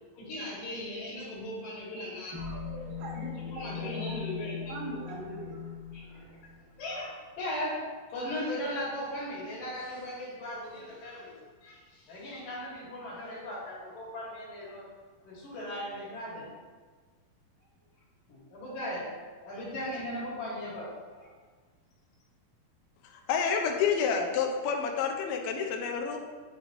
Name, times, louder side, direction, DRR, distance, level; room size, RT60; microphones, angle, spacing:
voice 1, 0.1-2.4 3.5-4.7 5.9-6.5 6.8-14.9 15.2-16.5 18.3-19.1 19.4-21.3, left 1 dB, 65° left, -5 dB, 3.1 m, -38 dB
sound 1, 2.3-7.0, left 6 dB, 55° right, 3.1 m, -40 dB
voice 2, 3.0-4.3 4.7-5.6, right 2 dB, 85° right, -1 dB, 2.9 m, -41 dB
voice 3, 23.1-26.2, left 6 dB, 85° left, 3 dB, 2.5 m, -29 dB
9.6 x 4.1 x 3.0 m, 1.5 s
omnidirectional pair, 4.3 m